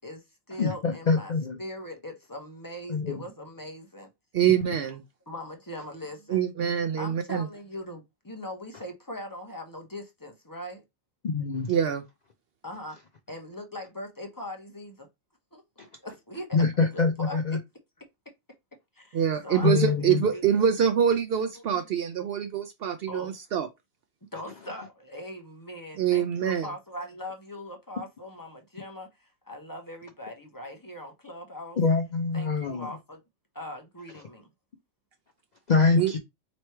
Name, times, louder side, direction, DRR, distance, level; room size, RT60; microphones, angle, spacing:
voice 1, 0.0-1.3 1.6-4.1 5.3-6.4 7.0-10.8 12.6-13.0 13.3-15.1 15.5-15.6 16.0-16.6 16.9-17.6 18.9-19.9 20.2-20.6 21.6-21.8 23.1-23.3 24.3-31.8 32.3-33.2 33.5-34.5, left 1 dB, 20° left, 0.9 m, -40 dB
voice 2, 0.6-1.6 2.9-3.2 11.2-11.7 16.5-17.6 19.6-20.2 31.8-32.9 35.7-36.2, left 4 dB, 50° left, 0.5 m, -24 dB
voice 3, 4.3-5.0 6.3-7.5 11.7-12.0 19.1-23.7 26.0-26.7 36.0-36.1, right 8 dB, 65° right, 0.7 m, -25 dB
3.2 x 3.0 x 4.4 m
omnidirectional pair, 1.3 m